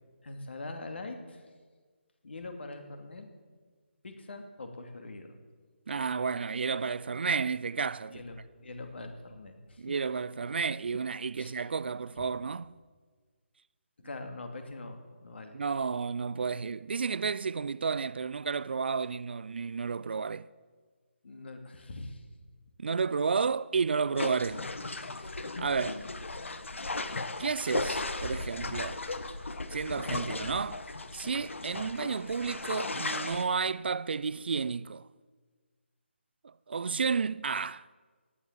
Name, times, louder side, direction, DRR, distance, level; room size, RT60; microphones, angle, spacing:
voice 1, 0.2-1.5 2.2-3.3 4.0-5.3 8.1-9.9 11.4-11.5 12.2-12.3 14.0-15.6 21.2-22.2 25.2-25.5 31.6-31.7, left 2 dB, 60° left, 2.5 m, -43 dB
voice 2, 5.9-8.2 9.8-12.6 15.5-20.5 22.8-24.6 25.6-26.1 27.4-29.0 29.7-30.8 31.1-35.0 36.7-37.8, right 5 dB, 55° right, 0.4 m, -31 dB
sound 1, 24.1-33.4, left 2 dB, 80° left, 1.2 m, -36 dB
17.0 x 10.0 x 7.4 m
figure-of-eight pair, 160°, 7 cm